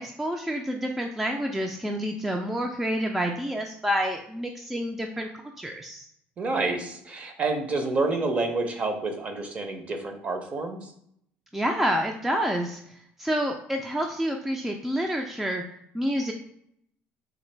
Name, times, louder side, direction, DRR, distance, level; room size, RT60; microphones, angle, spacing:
voice 1, 0.0-5.3 5.6-6.1 11.5-12.8 13.2-15.6 15.9-16.3, equal, 5° right, 2 dB, 0.3 m, -28 dB
voice 2, 6.4-10.9, right 3 dB, 35° right, 5 dB, 0.7 m, -28 dB
3.8 x 2.5 x 3.2 m, 0.71 s
cardioid pair, 115°, 4 cm